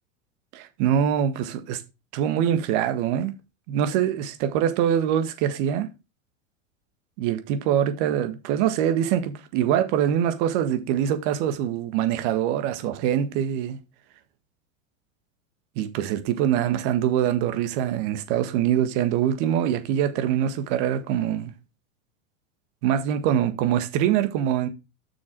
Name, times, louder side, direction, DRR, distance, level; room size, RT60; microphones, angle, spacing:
voice 1, 0.5-1.8 2.1-3.3 3.7-5.9 7.2-13.8 15.8-21.5 22.8-24.7, right 10 dB, 60° right, 1.7 m, -24 dB
7.3 x 6.3 x 4.6 m
hypercardioid pair, 110°, 40 cm